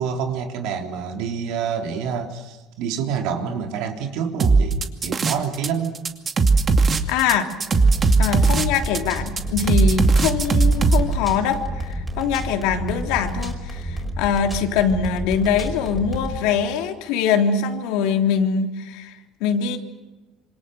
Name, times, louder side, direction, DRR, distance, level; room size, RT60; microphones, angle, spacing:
voice 1, 0.0-6.0, right 7 dB, 80° right, 4 dB, 3.6 m, -27 dB
sound 1, 4.4-5.7 5.9-11.0, right 4 dB, 25° right, 2.3 m, -17 dB
voice 2, 7.1-7.5 8.2-19.8, left 7 dB, 85° left, 4 dB, 3.5 m, -23 dB
sound 2, 7.7-16.4, right 1 dB, 5° right, 5.0 m, -30 dB
27.0 x 26.5 x 7.8 m, 1.1 s
cardioid pair, 150°, 0 cm